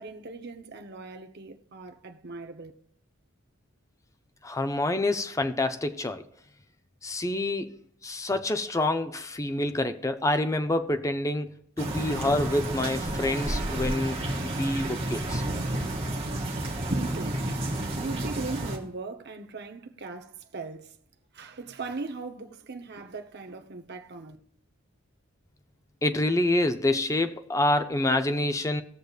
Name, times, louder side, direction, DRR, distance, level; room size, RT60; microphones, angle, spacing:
voice 1, 0.0-2.7 16.9-17.5 17.9-21.0 21.3-24.4, right 3 dB, 50° right, 0.9 m, -39 dB
voice 2, 4.4-6.2 7.0-7.8 8.0-15.4 26.0-28.8, left 1 dB, 15° left, 0.5 m, -27 dB
sound 1, 11.8-18.8, right 1 dB, 30° right, 1.7 m, -30 dB
19.0 x 6.5 x 2.4 m
head